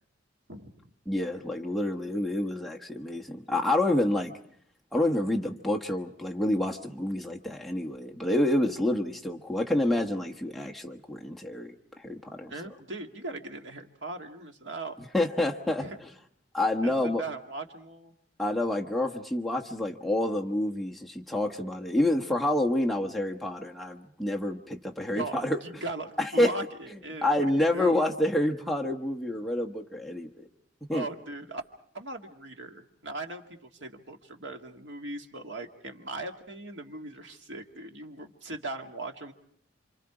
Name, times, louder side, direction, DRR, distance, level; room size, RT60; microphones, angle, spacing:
voice 1, 1.1-4.3 4.9-12.5 15.1-15.8 16.5-17.2 18.4-25.6 26.2-26.5 27.2-30.5 30.9-31.0, left 1 dB, ahead, -1 dB, 1.2 m, -28 dB
voice 2, 12.5-14.9 15.8-16.0 16.8-18.1 25.1-28.1 30.9-31.6 31.9-39.3, right 2 dB, 70° right, 4 dB, 2.0 m, -39 dB
28.5 x 26.5 x 4.9 m, 0.64 s
head